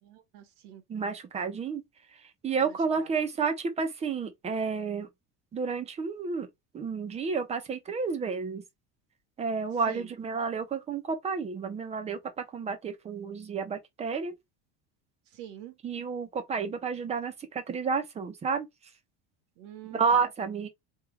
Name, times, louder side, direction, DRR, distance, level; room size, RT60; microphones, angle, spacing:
voice 1, 0.0-0.8 2.6-3.1 9.9-10.1 15.3-15.7 19.6-20.2, right 12 dB, 80° right, 1.4 m, -46 dB
voice 2, 0.9-1.8 2.4-5.1 5.5-6.5 6.7-8.6 9.4-14.3 15.8-18.7 19.9-20.7, right 5 dB, 20° right, 0.7 m, -31 dB
3.6 x 2.5 x 4.6 m
cardioid pair, 165°, 30 cm